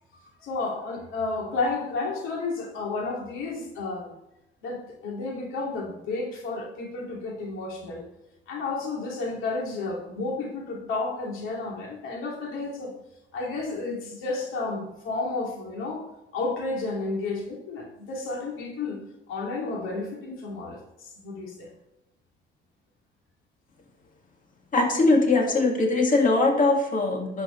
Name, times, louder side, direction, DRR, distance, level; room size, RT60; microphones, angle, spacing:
voice 1, 0.4-4.1 4.6-8.1 8.5-12.9 13.3-16.1 16.3-19.0 19.3-21.7, left 3 dB, 90° left, 0 dB, 2.6 m, -32 dB
voice 2, 24.7-27.4, left 2 dB, 45° left, 2 dB, 2.2 m, -21 dB
11.5 x 7.9 x 3.3 m, 0.91 s
cardioid pair, 90°, 20 cm